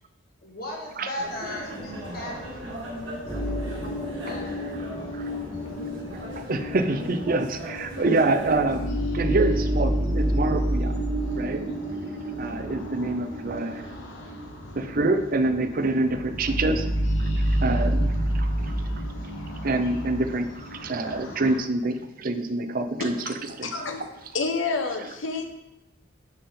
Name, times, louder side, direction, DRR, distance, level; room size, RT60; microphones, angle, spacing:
voice 1, 0.4-4.4, left 1 dB, 50° left, -2 dB, 1.5 m, -38 dB
sound 1, 1.2-8.9, equal, 80° right, 2.0 m, -38 dB
sound 2, 1.7-21.6, equal, 70° left, 1.3 m, -44 dB
sound 3, 3.2-21.9 22.3-22.4, right 1 dB, 10° left, 1.8 m, -29 dB
voice 2, 6.4-11.0 11.4-11.7 12.4-13.9 14.8-16.9 17.4-18.7 19.6-23.7, right 2 dB, 45° right, 9 dB, 0.6 m, -26 dB
voice 3, 23.6-24.1 24.3-25.4, left 4 dB, 90° left, 5 dB, 0.9 m, -28 dB
10.5 x 4.3 x 3.8 m, 0.95 s
head